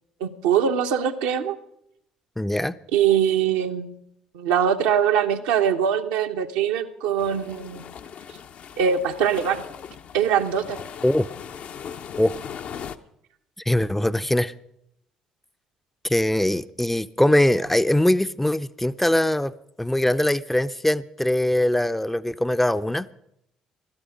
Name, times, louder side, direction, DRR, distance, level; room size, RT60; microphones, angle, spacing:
voice 1, 0.2-1.6 2.9-4.0 4.3-7.8 8.8-9.6 10.1-10.8, right 8 dB, 70° right, 0.9 m, -22 dB
voice 2, 2.4-2.7 11.0-11.3 12.2-12.3 13.7-14.5 16.0-19.5 19.8-23.1, left 1 dB, 5° left, 0.5 m, -22 dB
sound 1, 7.2-13.0, left 8 dB, 55° left, 0.7 m, -39 dB
16.0 x 12.5 x 5.1 m
figure-of-eight pair, 50°, 3 cm